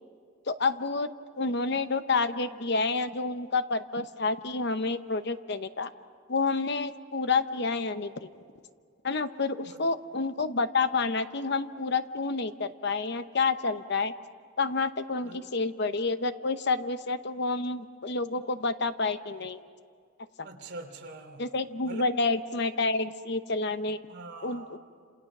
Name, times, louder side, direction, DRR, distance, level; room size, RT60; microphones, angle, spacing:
voice 1, 0.5-1.1 1.4-5.9 6.3-8.3 9.0-14.1 14.6-19.6 21.4-24.0 24.4-24.8, left 3 dB, 55° left, 11 dB, 0.9 m, -29 dB
voice 2, 20.4-21.4 21.8-22.0 24.1-24.8, right 2 dB, 50° right, 3 dB, 3.0 m, -43 dB
28.5 x 27.5 x 6.1 m, 2.2 s
head